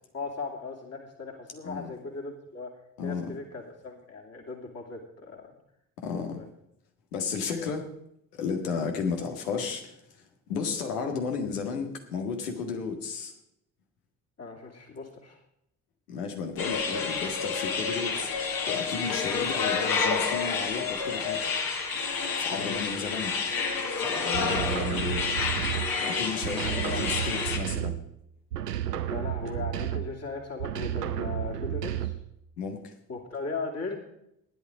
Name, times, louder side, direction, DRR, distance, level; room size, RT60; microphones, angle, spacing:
voice 1, 0.1-2.7 3.0-5.5 6.1-6.5 14.4-15.4 22.5-22.9 26.9-27.0 29.1-32.2 33.1-34.0, left 3 dB, 30° left, 1 dB, 2.7 m, -38 dB
voice 2, 3.0-3.3 6.0-6.4 7.1-7.9 8.3-13.3 16.1-21.5 22.4-23.4 24.0-25.3 26.0-28.0 32.6-32.9, left 5 dB, 75° left, 4 dB, 1.9 m, -33 dB
sound 1, 16.6-27.6, left 5 dB, 50° left, 2.2 m, -29 dB
sound 2, 24.3-26.1 26.4-28.2 28.5-30.2 30.6-32.3, right 11 dB, 85° right, 0.7 m, -32 dB
15.5 x 11.0 x 5.0 m, 0.78 s
figure-of-eight pair, 45°, 47 cm